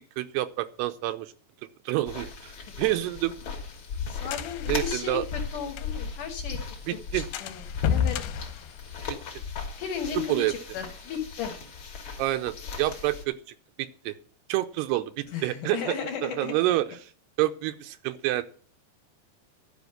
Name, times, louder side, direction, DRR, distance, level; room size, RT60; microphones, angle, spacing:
voice 1, 0.2-1.3 1.9-2.5 2.8-3.4 4.7-5.2 6.9-7.3 10.3-10.5 12.2-13.3 13.8-14.1 14.5-15.9 16.2-16.9 17.4-18.4, right 16 dB, 90° right, 10 dB, 2.8 m, -27 dB
sound 1, 2.0-13.2, left 5 dB, 45° left, 1.8 m, -38 dB
sound 2, 2.8-6.2 6.5-6.6 6.9-7.0 7.3-9.4, left 8 dB, 80° left, 2.6 m, -31 dB
voice 2, 4.1-6.6 7.1-7.6 7.9-8.2 9.8-11.6 15.3-16.5, left 7 dB, 65° left, 5 dB, 2.3 m, -35 dB
12.5 x 5.1 x 7.9 m, 0.44 s
omnidirectional pair, 4.7 m